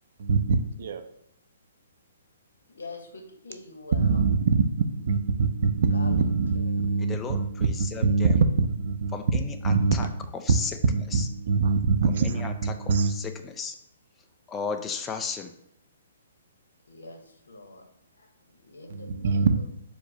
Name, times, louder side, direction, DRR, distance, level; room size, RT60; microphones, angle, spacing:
voice 1, 0.2-1.1 3.9-9.1 9.5-10.3 10.9-13.1 18.9-19.6, right 4 dB, 60° right, 0.4 m, -24 dB
voice 2, 2.7-4.2 5.9-6.7 16.9-17.9 18.2-19.6, left 2 dB, 90° left, 0.8 m, -44 dB
voice 3, 7.0-8.4 9.1-10.1 10.3-10.8 11.1-11.3 12.1-13.8 14.5-15.5, left 5 dB, 15° left, 0.3 m, -35 dB
4.6 x 2.1 x 4.4 m
hypercardioid pair, 140°, 0 cm